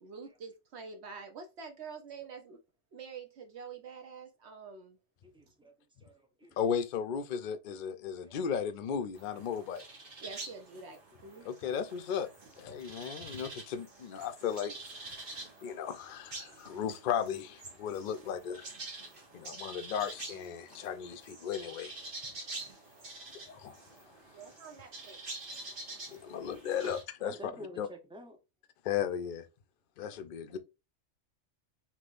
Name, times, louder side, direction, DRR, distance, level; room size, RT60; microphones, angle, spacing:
voice 1, 0.0-2.6 2.9-5.0 10.2-11.5 16.6-16.8 24.3-25.2 29.0-29.1, right 5 dB, 70° right, 0.9 m, -47 dB
voice 2, 5.3-5.7 6.0-6.1 6.4-6.6 8.2-8.4 27.2-28.4 30.1-30.2, left 1 dB, 10° right, 0.3 m, -48 dB
voice 3, 6.6-9.8 11.4-12.3 12.6-14.7 15.0-18.7 19.3-22.1 23.5-23.8 26.1-27.9 28.8-29.5 30.0-30.6, left 8 dB, 60° left, 0.5 m, -35 dB
sound 1, 9.2-27.0, right 3 dB, 50° right, 1.3 m, -47 dB
3.4 x 2.9 x 2.4 m
omnidirectional pair, 1.2 m